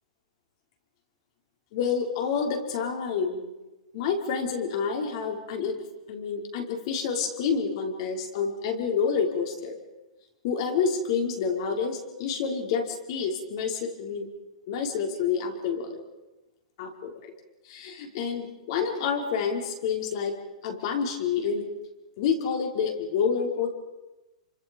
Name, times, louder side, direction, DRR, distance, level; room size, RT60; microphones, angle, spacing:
voice 1, 1.7-3.4 3.9-5.8 6.1-9.8 10.4-14.3 14.7-16.0 16.8-17.1 17.7-20.3 20.6-21.7 22.2-23.7, left 6 dB, 50° left, 3 dB, 5.0 m, -28 dB
29.0 x 25.5 x 5.4 m, 1.1 s
supercardioid pair, 160°, 4 cm